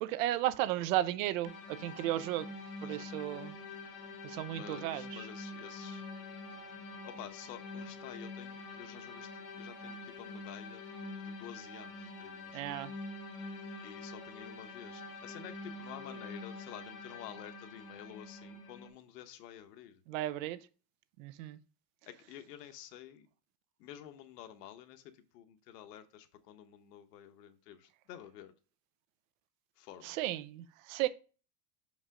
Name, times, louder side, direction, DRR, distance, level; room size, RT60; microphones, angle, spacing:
voice 1, 0.0-2.5 2.8-3.5 4.2-5.2 12.5-12.9 20.1-20.6 21.2-21.6 30.0-31.1, right 14 dB, 55° right, 0.6 m, -34 dB
sound 1, 1.4-18.9, left 3 dB, 60° left, 1.5 m, -46 dB
voice 2, 4.5-6.0 7.0-12.8 13.8-20.0 22.1-23.3 23.8-28.5 29.8-30.2, left 10 dB, 75° left, 1.1 m, -51 dB
6.1 x 5.3 x 3.7 m
supercardioid pair, 150°, 49 cm